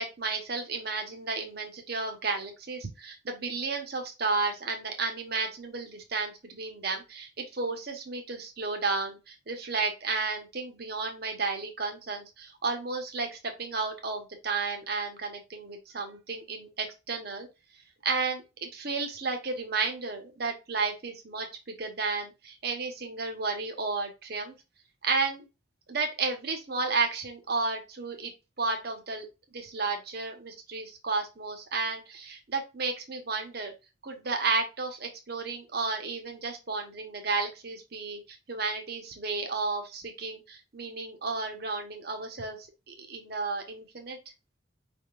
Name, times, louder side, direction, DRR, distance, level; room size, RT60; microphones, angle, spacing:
voice 1, 0.0-17.5 18.0-24.5 25.0-25.4 25.9-28.3 28.6-29.3 29.5-33.7 34.0-38.2 38.5-44.2, right 4 dB, 50° right, 4 dB, 1.1 m, -32 dB
5.4 x 3.6 x 2.5 m, 0.26 s
head